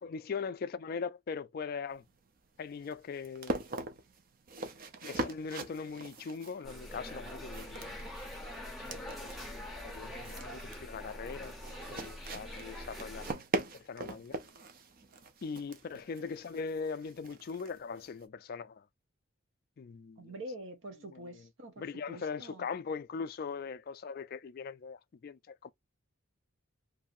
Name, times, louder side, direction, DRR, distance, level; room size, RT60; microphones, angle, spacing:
voice 1, 0.0-2.1 2.6-3.6 5.0-8.1 8.9-11.6 11.9-13.3 13.7-14.4 15.4-18.9 19.8-20.3 21.1-21.5 21.8-25.7, left 5 dB, 45° left, 0.3 m, -40 dB
sound 1, 1.9-18.2, right 2 dB, 45° right, 0.5 m, -42 dB
sound 2, 6.6-13.3, left 1 dB, ahead, 0.6 m, -44 dB
voice 2, 20.2-22.7, right 1 dB, 65° right, 0.8 m, -46 dB
2.7 x 2.5 x 2.4 m
head